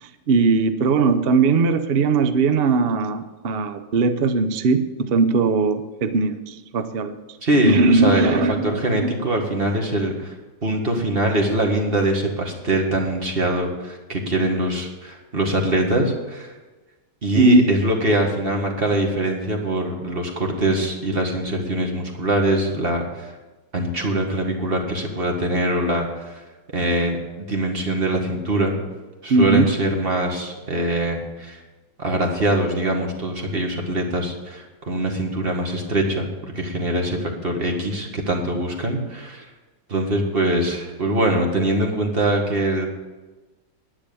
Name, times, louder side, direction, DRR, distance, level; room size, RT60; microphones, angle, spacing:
voice 1, 0.0-7.1 7.7-9.2 17.3-17.7 29.3-29.7, right 3 dB, 60° right, 9 dB, 0.6 m, -19 dB
voice 2, 7.4-10.3 10.6-16.5 17.2-23.3 23.7-26.4 26.7-28.8 29.2-31.6 32.0-39.5 39.9-42.9, right 1 dB, 30° right, 2 dB, 1.9 m, -23 dB
10.5 x 10.0 x 6.9 m, 1.2 s
omnidirectional pair, 2.1 m